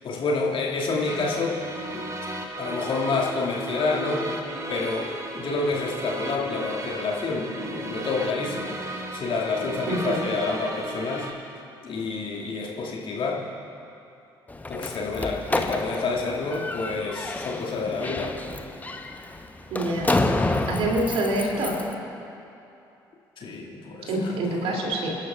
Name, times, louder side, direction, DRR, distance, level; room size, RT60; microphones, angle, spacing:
voice 1, 0.0-1.6 1.9-2.1 2.6-4.4 4.7-11.3 11.8-13.5 14.7-18.4 23.4-24.8, left 3 dB, 45° left, -3 dB, 2.4 m, -28 dB
sound 1, 1.1-11.3, right 1 dB, 25° right, 1.9 m, -35 dB
voice 2, 9.9-10.3 19.7-20.1 20.7-21.8 24.1-25.2, right 1 dB, 55° right, -1 dB, 3.0 m, -26 dB
Slam, 14.5-21.9, left 2 dB, 15° left, 1.0 m, -29 dB
28.5 x 11.5 x 2.5 m, 2.7 s
figure-of-eight pair, 50°, 12 cm